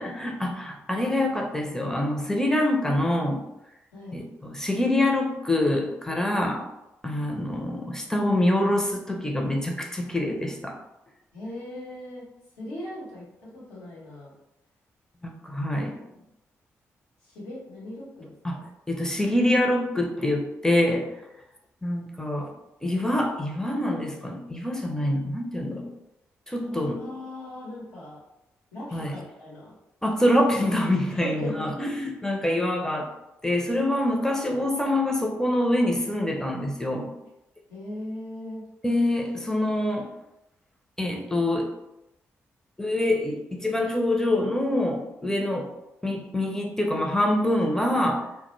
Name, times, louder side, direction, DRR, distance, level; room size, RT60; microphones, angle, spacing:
voice 1, 0.0-3.4 4.1-6.6 7.0-10.7 15.2-16.0 18.4-18.6 18.9-21.1 21.8-22.5 22.8-25.8 26.5-27.0 28.9-29.1 30.0-33.1 33.4-37.1 38.8-40.1 41.0-41.7 42.8-45.7 46.0-48.2, left 1 dB, 10° left, 1 dB, 0.6 m, -25 dB
voice 2, 11.3-12.2 12.6-13.2 13.5-14.3 15.7-16.2 17.2-18.7 26.6-28.2 28.7-29.7 31.1-31.7 37.7-38.6, left 1 dB, 85° left, -7 dB, 1.0 m, -39 dB
2.2 x 2.1 x 3.0 m, 0.91 s
hypercardioid pair, 40°, 6 cm